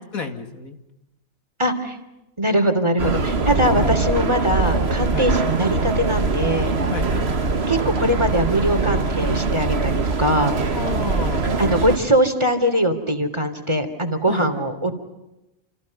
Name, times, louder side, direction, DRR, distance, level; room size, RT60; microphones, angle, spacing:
voice 1, 0.1-0.8 3.7-4.0 5.1-5.3 6.8-7.4 10.7-11.5 14.3-14.6, left 5 dB, 90° left, 6 dB, 3.0 m, -31 dB
voice 2, 1.6-2.0 2.4-6.7 7.7-10.6 11.6-14.9, equal, 20° right, 7 dB, 3.3 m, -21 dB
sound 1, 3.0-12.0, right 4 dB, 50° right, 1.8 m, -22 dB
29.0 x 29.0 x 5.5 m, 0.95 s
omnidirectional pair, 1.4 m